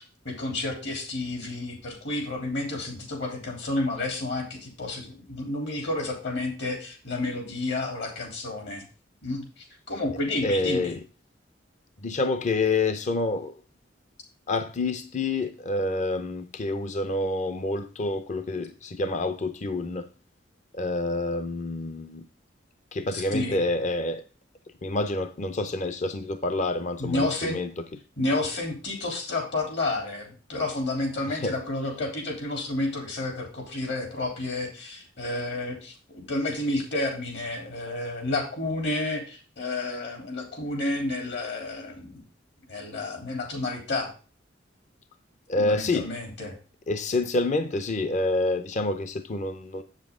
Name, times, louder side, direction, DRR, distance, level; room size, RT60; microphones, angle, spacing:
voice 1, 0.0-8.8 9.2-10.9 23.1-23.6 27.0-27.6 28.2-42.2 42.7-44.1 45.5-46.6, left 2 dB, 65° left, 3.2 m, -30 dB
voice 2, 10.4-11.0 12.0-13.5 14.5-20.1 20.7-22.2 22.9-24.2 24.8-27.8 31.3-31.6 45.5-46.1 46.9-49.8, left 2 dB, 40° left, 0.6 m, -28 dB
8.1 x 7.5 x 3.6 m
head